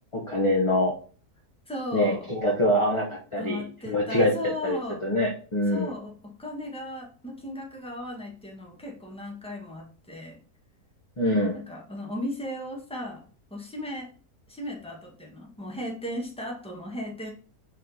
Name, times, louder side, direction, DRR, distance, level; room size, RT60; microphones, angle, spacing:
voice 1, 0.1-0.9 1.9-5.9 11.2-11.6, left 1 dB, 20° left, -2 dB, 1.1 m, -25 dB
voice 2, 1.7-2.3 3.3-5.0 5.7-10.4 11.5-13.2 13.5-14.1 14.5-17.3, left 1 dB, 5° left, -1 dB, 1.3 m, -36 dB
5.2 x 4.7 x 3.9 m, 0.40 s
omnidirectional pair, 1.6 m